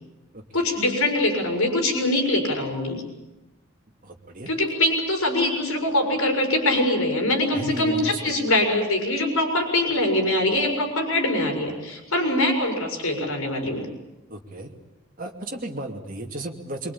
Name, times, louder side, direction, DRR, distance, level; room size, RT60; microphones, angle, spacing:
voice 1, 0.5-3.0 4.5-13.9, left 1 dB, 90° left, 2 dB, 5.7 m, -23 dB
voice 2, 4.0-4.5 7.5-8.4 14.3-14.7 15.2-16.9, right 1 dB, 40° right, 1 dB, 2.7 m, -34 dB
24.5 x 23.5 x 8.7 m, 1.0 s
head